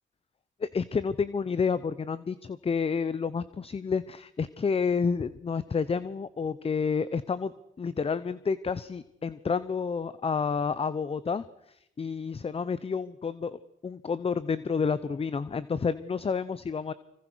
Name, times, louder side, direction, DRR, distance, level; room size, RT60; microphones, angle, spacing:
voice 1, 0.6-16.9, left 5 dB, 30° left, 16 dB, 0.9 m, -30 dB
25.5 x 24.5 x 6.3 m, 0.80 s
cardioid pair, 90°, 20 cm